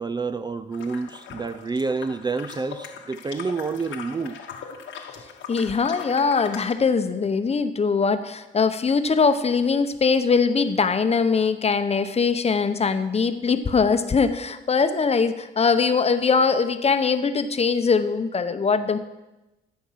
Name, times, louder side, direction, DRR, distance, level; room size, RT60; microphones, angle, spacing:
voice 1, 0.0-4.4, right 4 dB, 20° right, 11 dB, 0.4 m, -28 dB
sound 1, 0.7-6.7, left 7 dB, 75° left, 1.3 m, -40 dB
voice 2, 5.5-19.0, left 5 dB, 30° left, 10 dB, 0.8 m, -22 dB
14.0 x 6.0 x 5.8 m, 1.0 s
cardioid pair, 90°, 20 cm